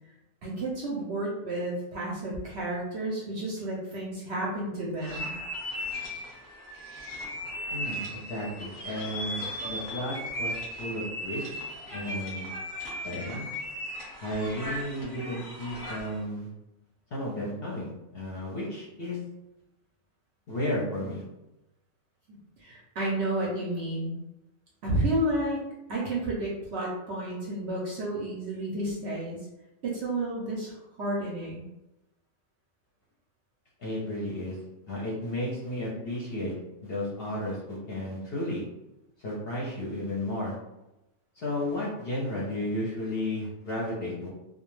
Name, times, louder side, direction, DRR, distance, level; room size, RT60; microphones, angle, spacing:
voice 1, 0.4-5.3 22.6-24.1 24.8-25.6 25.9-29.4 29.8-31.6, right 1 dB, 65° right, -3 dB, 0.7 m, -31 dB
sound 1, 5.0-16.2, left 1 dB, 20° left, 0.8 m, -37 dB
voice 2, 7.7-11.4 11.9-12.6 13.0-13.5 14.2-16.5 17.1-19.2 20.5-21.2 33.8-34.6 34.9-36.5 36.8-38.6 39.2-40.6 41.4-44.3, left 1 dB, 55° left, -5 dB, 0.7 m, -33 dB
2.3 x 2.2 x 3.1 m, 0.94 s
omnidirectional pair, 1.5 m